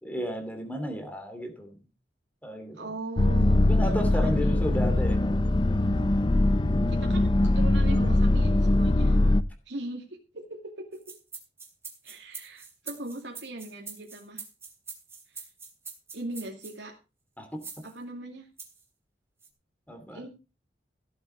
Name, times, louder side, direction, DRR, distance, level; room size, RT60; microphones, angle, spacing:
voice 1, 0.0-1.8 2.4-2.9 3.6-5.7 17.4-17.6 19.9-20.2, equal, 10° left, 5 dB, 2.8 m, -34 dB
voice 2, 2.7-4.6 6.9-9.2 9.7-11.0 12.0-14.4 15.3-15.4 16.1-16.9 17.8-18.5 20.1-20.3, right 2 dB, 85° right, 1 dB, 2.4 m, -39 dB
sound 1, 3.2-9.4, left 1 dB, 25° left, 0.5 m, -22 dB
sound 2, 10.9-16.8 17.6-17.9 18.6-18.8 19.4-19.5, right 4 dB, 15° right, 3.2 m, -43 dB
16.5 x 8.0 x 4.5 m, 0.30 s
head